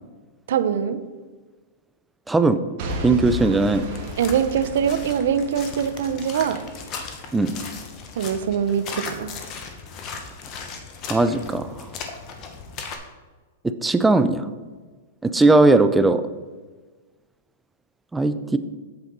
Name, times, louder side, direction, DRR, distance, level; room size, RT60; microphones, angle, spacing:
voice 1, 0.5-1.0 4.2-6.6 8.2-9.3, right 8 dB, 70° right, 11 dB, 0.6 m, -23 dB
voice 2, 2.3-2.6 3.0-3.8 7.3-7.5 11.1-11.9 13.6-14.5 15.2-16.2 18.1-18.6, right 2 dB, 5° right, 10 dB, 0.4 m, -18 dB
Boom / Shatter / Crushing, 2.8-6.8 7.3-7.4, equal, 40° right, 1.5 m, -34 dB
sound 1, 3.9-13.0, left 5 dB, 30° left, 0.9 m, -37 dB
8.1 x 6.8 x 3.9 m, 1.3 s
supercardioid pair, 160°, 0 cm